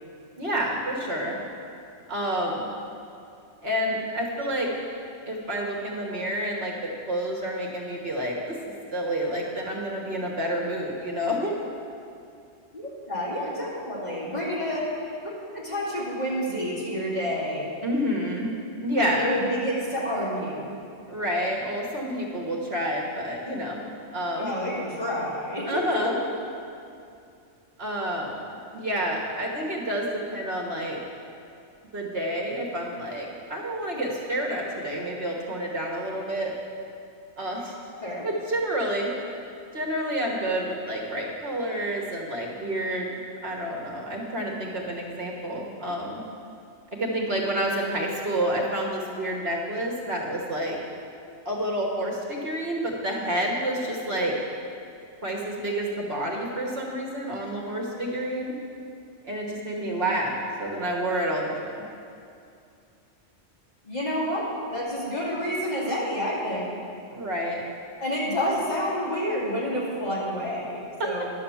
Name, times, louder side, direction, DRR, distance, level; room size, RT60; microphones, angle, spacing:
voice 1, 0.4-1.4 2.1-2.7 3.6-4.7 5.2-8.6 8.9-11.5 17.8-18.6 18.8-19.4 21.1-23.8 24.1-24.5 25.7-26.2 27.8-28.5 28.7-31.0 31.9-36.5 37.4-37.7 38.2-39.1 39.7-46.2 47.0-50.8 51.4-54.3 55.2-58.5 59.2-61.8 67.1-67.6 71.0-71.1, equal, 55° right, -1 dB, 1.5 m, -29 dB
voice 2, 12.7-14.9 15.5-17.7 19.0-20.7 24.3-26.1 38.0-38.2 63.8-66.7 68.0-71.3, equal, 35° left, -8 dB, 2.7 m, -29 dB
10.5 x 6.7 x 7.1 m, 2.5 s
omnidirectional pair, 1.2 m